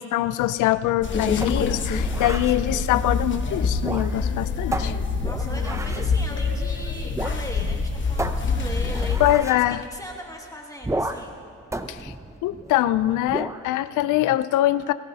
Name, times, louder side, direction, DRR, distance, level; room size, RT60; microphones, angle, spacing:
voice 1, 0.0-4.9 9.2-9.8 11.9-12.1 12.4-14.9, left 14 dB, 85° left, 15 dB, 0.5 m, -23 dB
sound 1, 1.0-9.3, left 4 dB, 40° left, 1.1 m, -26 dB
sound 2, 1.4-2.6 3.7-4.3 4.7-6.1 7.1-7.4 7.7-7.8 8.2-9.6 10.8-11.4 11.7-12.8 13.3-13.7, right 2 dB, 10° right, 0.6 m, -32 dB
voice 2, 5.2-9.6 9.9-11.4, left 1 dB, 10° left, 0 dB, 1.4 m, -38 dB
22.5 x 14.5 x 2.8 m, 2.6 s
cardioid pair, 90°, 30 cm